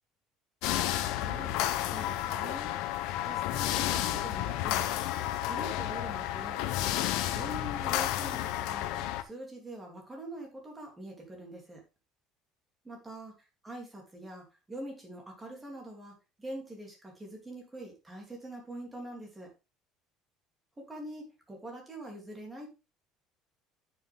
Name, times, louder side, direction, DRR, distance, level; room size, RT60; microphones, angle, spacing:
sound 1, 0.6-9.2, left 13 dB, 75° left, 0.9 m, -31 dB
voice 1, 1.1-1.6 1.9-2.7 3.2-4.8 5.4-7.0 7.3-8.9 9.2-11.8 12.8-13.3 13.6-16.1 16.4-19.5 20.8-22.7, right 1 dB, 10° right, 0 dB, 3.2 m, -44 dB
9.7 x 6.7 x 3.6 m, 0.28 s
cardioid pair, 165°, 0 cm